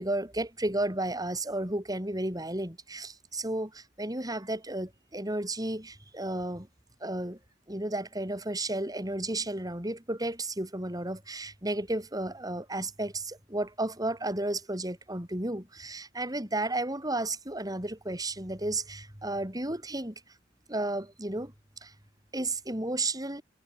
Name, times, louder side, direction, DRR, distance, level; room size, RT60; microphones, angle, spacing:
voice 1, 0.0-6.7 7.0-7.4 7.7-20.1 20.7-21.5 21.8-21.9 22.3-23.4, right 2 dB, 20° right, 6.7 m, -33 dB
head